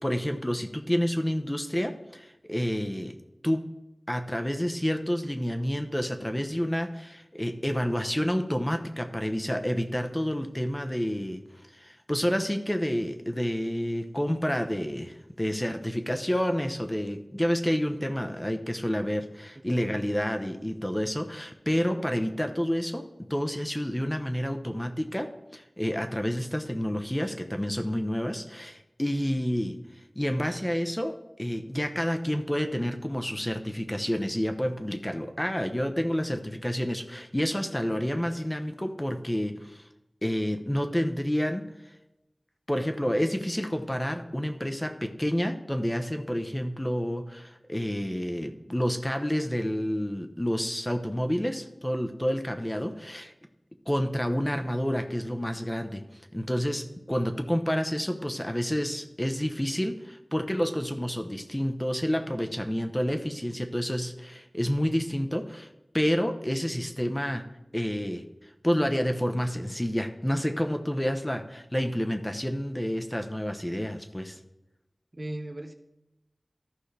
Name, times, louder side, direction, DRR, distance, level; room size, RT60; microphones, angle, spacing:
voice 1, 0.0-3.1 3.4-3.7 4.1-11.4 11.7-29.8 30.1-39.9 40.2-41.7 42.7-53.3 53.9-56.0 56.3-67.4 67.7-74.4, equal, 15° left, 6 dB, 0.9 m, -29 dB
voice 2, 19.6-20.0 75.1-75.7, right 1 dB, 45° right, 6 dB, 0.8 m, -38 dB
14.0 x 5.5 x 3.4 m, 0.92 s
wide cardioid pair, 55°, 0 cm